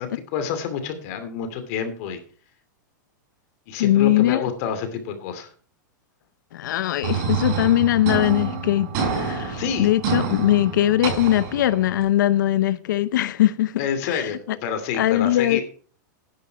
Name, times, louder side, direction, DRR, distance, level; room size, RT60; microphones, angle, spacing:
voice 1, 0.0-2.2 3.7-5.5 9.6-9.9 13.8-15.6, left 7 dB, 50° left, 2.6 m, -28 dB
voice 2, 3.8-4.4 6.5-13.7 14.0-14.3 14.9-15.6, left 13 dB, 75° left, 0.8 m, -21 dB
sound 1, 7.0-12.0, right 5 dB, 40° right, 6.0 m, -27 dB
10.5 x 10.0 x 4.7 m
supercardioid pair, 145°, 10 cm